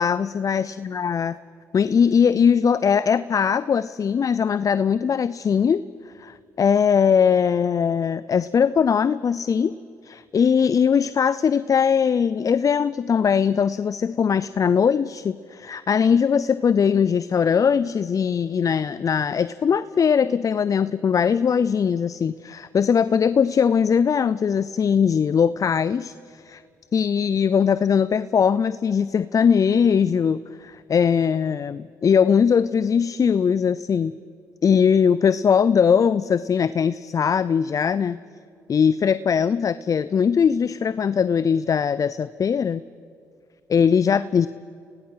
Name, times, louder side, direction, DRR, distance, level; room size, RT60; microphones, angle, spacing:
voice 1, 0.0-1.3 1.7-9.8 10.0-26.6 26.9-34.1 34.6-38.2 38.7-42.8 43.7-44.5, left 7 dB, 45° left, 16 dB, 0.5 m, -20 dB
30.0 x 18.0 x 5.8 m, 2.4 s
hypercardioid pair, 55°, 8 cm